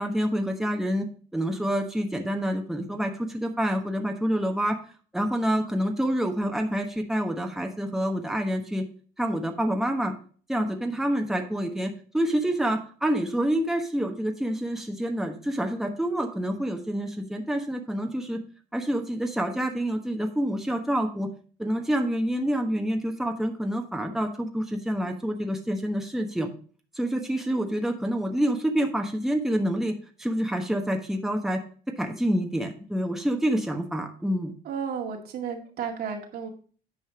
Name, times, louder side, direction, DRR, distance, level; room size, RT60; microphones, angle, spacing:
voice 1, 0.0-4.8 5.1-8.8 9.2-10.1 10.5-18.4 18.7-21.3 21.6-26.5 26.9-31.6 32.0-34.5, equal, ahead, 3 dB, 1.2 m, -27 dB
voice 2, 34.6-36.5, right 6 dB, 65° right, 2 dB, 2.1 m, -33 dB
9.2 x 5.2 x 5.0 m, 0.41 s
cardioid pair, 110°, 17 cm